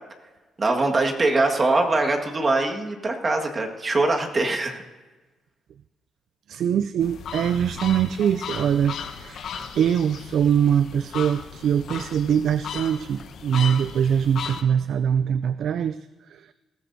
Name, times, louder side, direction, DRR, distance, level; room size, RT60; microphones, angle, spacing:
voice 1, 0.6-4.8, right 2 dB, 30° right, 2 dB, 1.7 m, -22 dB
voice 2, 6.5-9.5 9.7-16.0, right 8 dB, 70° right, 14 dB, 0.3 m, -23 dB
sound 1, 7.0-14.6, left 6 dB, 65° left, 1.0 m, -36 dB
20.0 x 14.5 x 2.7 m, 1.2 s
cardioid pair, 90°, 0 cm